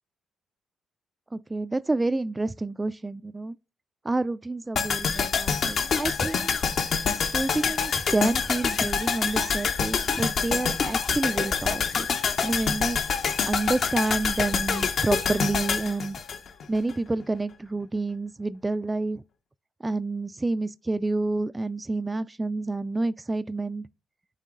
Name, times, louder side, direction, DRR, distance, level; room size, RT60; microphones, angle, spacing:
voice 1, 1.3-3.6 4.0-6.5 7.3-12.1 12.4-13.0 13.5-16.2 16.7-19.2 19.8-23.9, right 2 dB, 15° right, 0.4 m, -29 dB
sound 1, 4.8-16.9 17.2-17.3, left 6 dB, 55° left, 0.8 m, -26 dB
8.3 x 3.0 x 3.8 m
cardioid pair, 90°, 0 cm